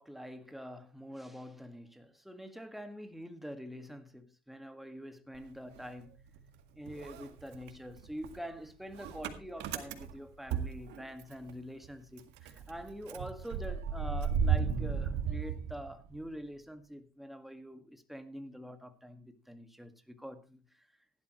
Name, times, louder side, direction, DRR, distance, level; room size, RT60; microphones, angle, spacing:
voice 1, 0.0-6.1 6.8-20.9, equal, ahead, 1.8 m, -45 dB
Motor vehicle (road) / Engine starting, 5.3-6.6 6.9-11.5 11.8-11.9 12.2-16.3, right 6 dB, 90° right, 1.9 m, -35 dB
16.5 x 12.0 x 3.1 m
cardioid pair, 110°, 17 cm